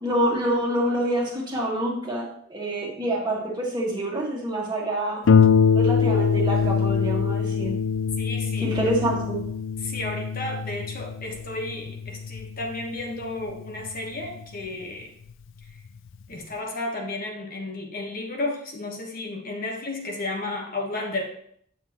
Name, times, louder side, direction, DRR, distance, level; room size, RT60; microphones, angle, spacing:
voice 1, 0.0-5.2 5.7-7.8 8.6-9.4, right 1 dB, 20° right, -2 dB, 1.7 m, -26 dB
Harp, 5.3-14.4 15.3-15.4 15.9-16.0, left 6 dB, 75° left, 0.4 m, -23 dB
voice 2, 8.2-8.7 9.8-15.1 16.3-21.2, left 2 dB, 45° left, 0 dB, 1.2 m, -32 dB
9.2 x 7.2 x 2.9 m, 0.65 s
head